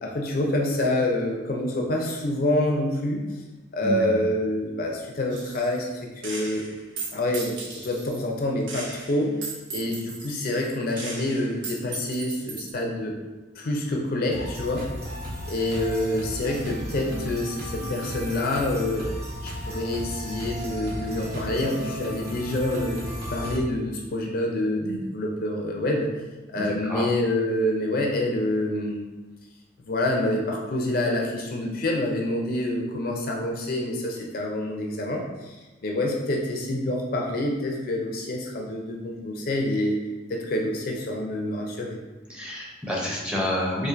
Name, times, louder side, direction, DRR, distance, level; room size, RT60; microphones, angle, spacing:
voice 1, 0.0-3.2 3.7-6.7 7.1-9.4 9.7-13.1 13.5-14.9 15.4-19.1 19.4-23.0 23.3-26.1 26.5-29.0 29.8-40.0 40.3-42.0, left 1 dB, 50° left, 0 dB, 0.5 m, -27 dB
voice 2, 3.8-4.1 26.6-27.1 42.3-43.9, left 1 dB, 5° right, -4 dB, 0.6 m, -29 dB
Gunshot gunfire, 5.3-5.9 6.2-8.2 8.7-12.7, right 3 dB, 85° right, 0.7 m, -37 dB
sound 1, 14.3-23.6, equal, 55° right, 0.9 m, -34 dB
4.3 x 2.5 x 2.5 m, 1.2 s
head